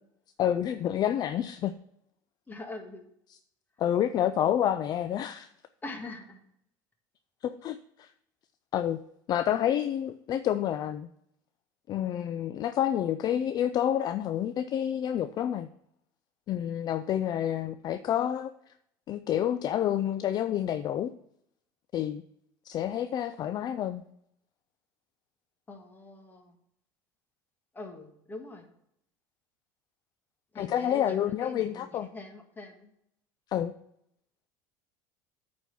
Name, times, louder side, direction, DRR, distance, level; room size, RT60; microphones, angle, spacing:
voice 1, 0.4-1.7 3.8-5.5 7.4-8.1 8.7-9.0 9.3-11.1 11.9-15.7 16.5-18.5 19.1-21.1 21.9-22.2 22.7-24.0 30.6-32.1 33.5-33.7, left 10 dB, 40° left, 0.4 m, -28 dB
voice 2, 2.5-3.0 5.8-6.4 25.7-26.6 27.7-28.7 30.5-32.9, left 2 dB, 20° left, 1.7 m, -43 dB
9.1 x 4.3 x 7.0 m
supercardioid pair, 110°, 10 cm